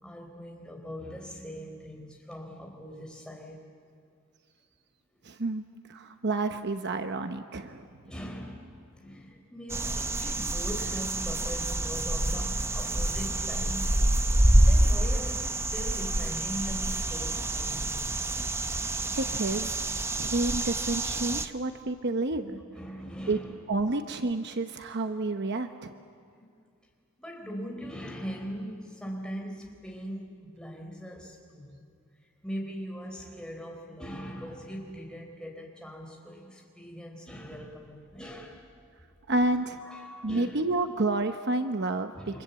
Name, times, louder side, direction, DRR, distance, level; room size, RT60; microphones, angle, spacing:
voice 1, 0.0-3.6 8.0-14.2 14.6-18.1 22.5-23.6 26.3-26.5 27.2-31.9 32.4-38.9 39.8-40.7 42.2-42.4, equal, 5° left, 0 dB, 4.0 m, -41 dB
voice 2, 5.2-7.9 19.2-19.8 20.2-22.6 23.3-23.4 23.7-25.9 39.3-39.8 40.2-42.4, right 2 dB, 50° right, 8 dB, 0.9 m, -30 dB
sound 1, 9.7-21.5, right 1 dB, 10° right, 0.7 m, -27 dB
28.5 x 25.5 x 8.2 m, 2.2 s
head